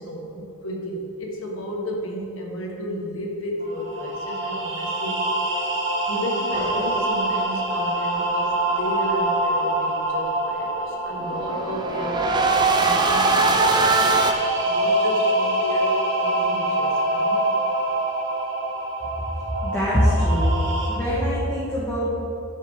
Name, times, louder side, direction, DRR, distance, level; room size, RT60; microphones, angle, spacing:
voice 1, 0.0-5.3 6.1-17.4, equal, 65° left, -1 dB, 1.6 m, -33 dB
sound 1, 3.6-20.9, right 1 dB, 55° right, 1.8 m, -25 dB
sound 2, 6.5-7.4 11.2-14.3, right 3 dB, 20° right, 0.5 m, -22 dB
voice 2, 19.6-20.6 20.9-22.1, equal, 10° left, -10 dB, 1.5 m, -22 dB
11.5 x 6.8 x 3.7 m, 2.8 s
head